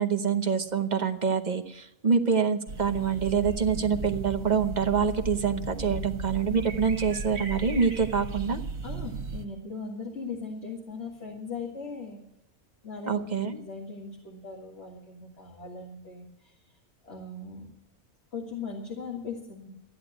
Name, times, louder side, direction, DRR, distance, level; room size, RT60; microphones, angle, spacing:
voice 1, 0.0-8.6 13.1-13.6, right 6 dB, 35° right, 7 dB, 0.9 m, -26 dB
sound 1, 2.7-9.5, right 3 dB, 75° right, 1.8 m, -36 dB
voice 2, 8.8-12.2 12.8-16.7 17.0-17.7 18.3-19.7, left 4 dB, 50° left, 0 dB, 2.3 m, -39 dB
13.5 x 10.5 x 7.9 m, 0.84 s
omnidirectional pair, 1.4 m